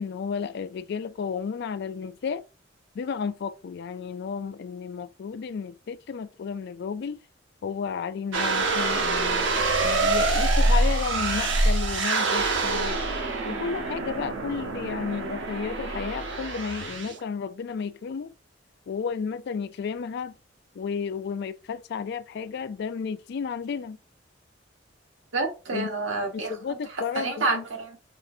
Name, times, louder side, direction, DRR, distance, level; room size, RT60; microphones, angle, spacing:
voice 1, 0.0-2.4 2.9-7.2 7.6-9.5 9.8-13.0 13.4-18.3 18.9-20.3 20.7-24.0 25.7-25.9 26.3-27.6, left 6 dB, 60° left, 0.3 m, -32 dB
sound 1, 8.3-17.2, right 2 dB, 70° right, 0.8 m, -25 dB
voice 2, 25.3-26.5 27.1-28.0, right 3 dB, 90° right, 1.2 m, -28 dB
5.3 x 2.7 x 2.5 m
head